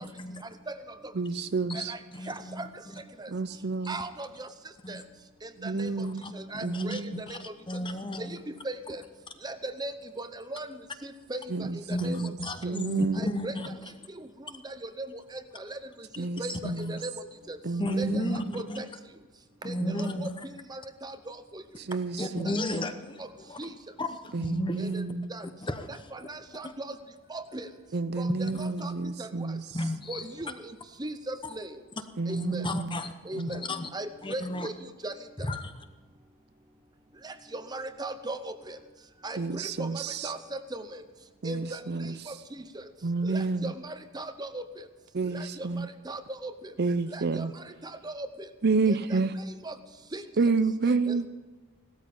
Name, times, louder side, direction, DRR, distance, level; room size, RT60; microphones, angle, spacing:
voice 1, 0.0-0.4 1.7-2.7 2.9-3.0 4.8-5.0 5.7-6.3 6.6-8.4 11.9-13.8 16.5-16.8 17.8-18.8 19.6-20.3 22.2-23.7 24.0-25.0 25.6-26.1 26.6-26.7 28.5-28.6 29.7-30.3 32.3-33.9 34.2-34.7 35.4-35.7, left 1 dB, 20° left, 9 dB, 0.9 m, -34 dB
voice 2, 1.2-1.9 3.3-4.0 5.6-6.3 6.6-7.3 11.5-12.3 12.6-13.3 16.2-17.0 17.6-18.4 19.8-20.2 21.8-22.6 24.3-25.3 27.9-29.6 32.2-32.7 33.4-33.6 39.4-40.3 41.4-42.3 43.0-43.7 45.1-45.9 46.8-47.5 48.6-49.3 50.4-51.3, right 3 dB, 45° right, 12 dB, 0.5 m, -29 dB
voice 3, 2.3-2.7 3.2-3.3 3.9-4.5 4.9-5.0 5.4-5.9 6.3-7.0 7.3-7.4 8.2-8.3 8.6-9.0 9.4-9.9 10.2-10.7 11.0-11.4 11.9-12.2 12.7-12.8 13.2-13.5 14.8-15.1 15.5-15.8 16.2-16.5 16.9-17.1 17.5-17.6 18.0-18.2 18.5-18.8 19.6-20.3 20.7-21.6 22.2-22.5 23.6-23.7 24.9-25.0 25.3-25.4 26.1-26.9 27.3-27.7 28.2-28.3 28.6-28.9 29.2-29.3 30.1-30.5 31.0-31.7 32.3-32.6 33.3-33.6 33.9-34.7 35.0-35.1 37.2-38.8 39.2-40.4 40.7-40.8 41.4-41.8 43.2-44.6 45.3-46.5 47.1-47.5 48.0-48.3 48.9-49.2 49.6-49.7 50.1-50.2 51.1-51.3, right 2 dB, 20° right, 10 dB, 0.8 m, -38 dB
17.0 x 13.0 x 5.4 m, 1.3 s
head